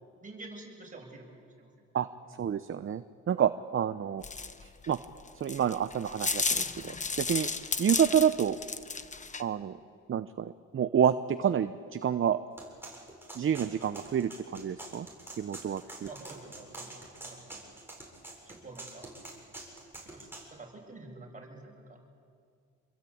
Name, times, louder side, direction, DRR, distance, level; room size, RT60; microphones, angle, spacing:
voice 1, 0.2-1.7 16.1-17.7 18.5-19.1 20.0-22.0, right 2 dB, 25° right, 0 dB, 7.4 m, -48 dB
voice 2, 2.4-4.3 4.6-5.0 5.3-7.5 7.8-8.6 9.4-9.7 10.1-12.4 13.3-15.1 15.4-16.1, right 8 dB, 45° right, 11 dB, 0.8 m, -29 dB
sound 1, 4.2-9.4, left 4 dB, 25° left, 1.2 m, -33 dB
sound 2, 12.6-20.5, right 2 dB, 5° right, 7.8 m, -46 dB
27.5 x 22.0 x 8.7 m, 2.2 s
cardioid pair, 90°, 30 cm